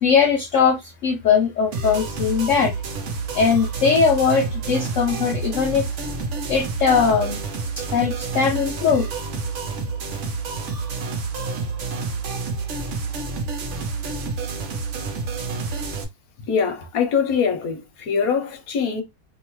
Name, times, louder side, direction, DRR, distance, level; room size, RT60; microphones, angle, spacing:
voice 1, 0.0-2.7 3.3-5.9 6.5-7.4 7.8-9.1, left 6 dB, 80° left, 0.7 m, -20 dB
sound 1, 1.7-16.0, right 4 dB, 60° right, 0.8 m, -29 dB
voice 2, 16.5-19.0, left 6 dB, 60° left, 1.1 m, -23 dB
2.8 x 2.7 x 3.0 m
omnidirectional pair, 1.9 m